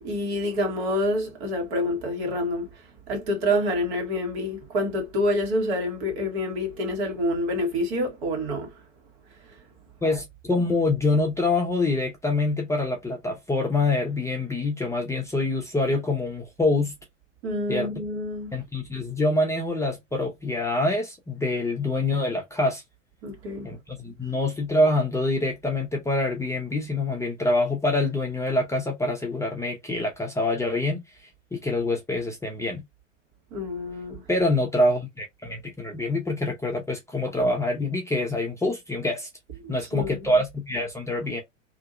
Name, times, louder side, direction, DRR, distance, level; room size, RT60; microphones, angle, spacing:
voice 1, 0.0-8.8 9.5-9.6 17.4-18.6 23.2-23.7 33.5-34.2 39.6-40.3, left 1 dB, 55° right, 1.6 m, -27 dB
voice 2, 10.0-16.9 17.7-17.9 18.5-22.8 23.6-31.0 31.5-32.8 34.3-39.3 39.7-41.4, left 2 dB, 10° left, 0.7 m, -25 dB
2.9 x 2.7 x 2.4 m
figure-of-eight pair, 95°, 38 cm